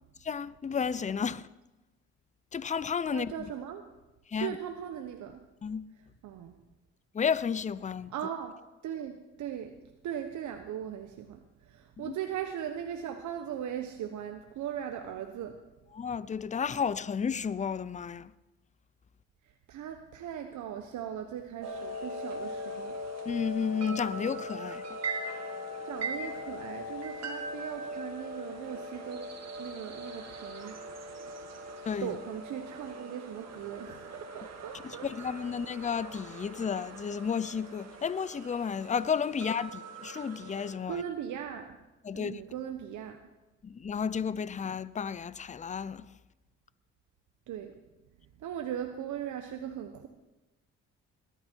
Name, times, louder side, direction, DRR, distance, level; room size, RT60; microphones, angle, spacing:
voice 1, 0.2-1.5 2.5-3.3 4.3-4.6 5.6-5.9 7.1-8.1 12.0-12.1 15.9-18.3 23.3-25.0 31.8-32.2 34.8-41.0 42.0-42.4 43.6-46.1, left 6 dB, 25° left, 0.5 m, -32 dB
voice 2, 3.1-3.9 4.4-5.4 6.2-6.5 8.1-8.5 8.8-9.7 10.0-15.6 19.4-23.0 25.9-29.3 29.6-30.8 32.0-35.1 40.9-41.8 42.1-43.2 47.5-47.7 48.4-50.1, right 9 dB, 75° right, 1.1 m, -39 dB
Wind Chimes, 21.6-40.8, equal, 60° right, 2.2 m, -41 dB
19.5 x 12.0 x 4.6 m
cardioid pair, 90°, 30 cm